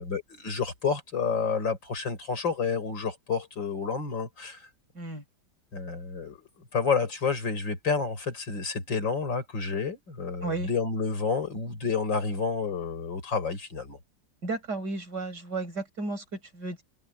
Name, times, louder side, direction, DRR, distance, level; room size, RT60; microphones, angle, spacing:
voice 1, 0.0-4.7 5.7-6.4 6.7-14.0, left 5 dB, 90° left, 5.5 m, -30 dB
voice 2, 14.4-16.8, right 3 dB, 65° right, 5.7 m, -33 dB
omnidirectional pair, 1.9 m